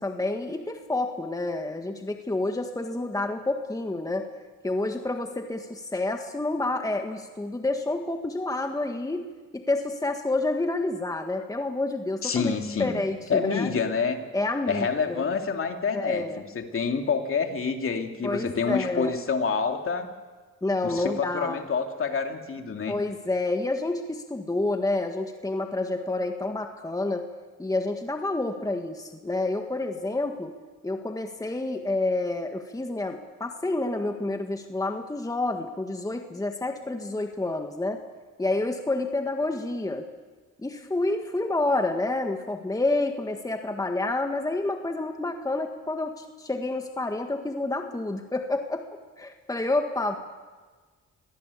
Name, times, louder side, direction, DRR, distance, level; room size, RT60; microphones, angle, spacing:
voice 1, 0.0-4.3 4.6-9.2 9.5-13.7 14.3-15.2 15.9-16.4 18.2-19.2 20.6-21.7 22.9-27.3 27.6-30.5 30.8-38.0 38.4-40.1 40.6-48.8 49.2-50.2, left 2 dB, 10° left, 5 dB, 1.7 m, -29 dB
voice 2, 12.2-12.9 13.3-14.2 14.7-20.1 20.8-23.0, left 5 dB, 45° left, 4 dB, 2.7 m, -27 dB
24.5 x 18.5 x 8.5 m, 1.4 s
cardioid pair, 90°, 30 cm